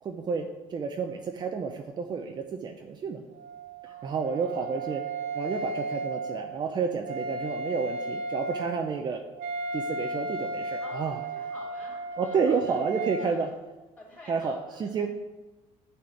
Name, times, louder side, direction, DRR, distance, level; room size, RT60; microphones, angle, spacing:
voice 1, 0.0-3.2 4.0-5.1 5.3-9.2 9.7-11.2 12.2-13.5 14.3-15.1, right 5 dB, 30° right, 4 dB, 0.7 m, -30 dB
Wind instrument woodwind instrument, 3.3-13.3, right 2 dB, 90° right, 1.3 m, -35 dB
voice 2, 3.8-5.0 5.5-5.8 7.2-7.3 10.8-12.8 13.2-13.5 14.0-15.1, left 1 dB, 10° left, -4 dB, 3.0 m, -50 dB
10.5 x 4.4 x 7.8 m, 1.1 s
cardioid pair, 150°, 14 cm